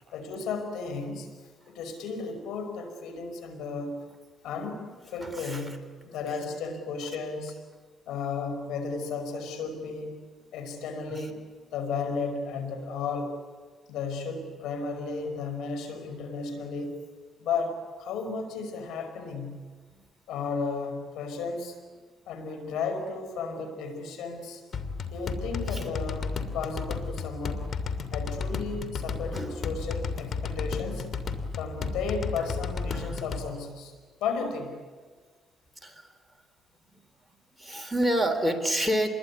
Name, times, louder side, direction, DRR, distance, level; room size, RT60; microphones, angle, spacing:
voice 1, 0.1-1.3 1.7-4.0 4.4-7.6 8.1-10.2 10.5-13.4 13.9-17.0 17.4-19.7 20.3-21.8 22.3-24.6 25.1-27.7 28.1-31.1 31.6-33.9 34.2-34.8, left 4 dB, 85° left, 7 dB, 5.2 m, -34 dB
voice 2, 5.2-5.8 11.1-11.3 19.9-20.0 25.7-25.9 29.3-29.7 32.4-32.5 32.9-33.2 35.8-36.1 36.9-37.0 37.6-39.1, equal, ahead, 9 dB, 3.5 m, -29 dB
sound 1, 24.7-33.5, left 4 dB, 55° left, 2.7 m, -33 dB
27.5 x 21.5 x 9.7 m, 1.4 s
cardioid pair, 90°, 0 cm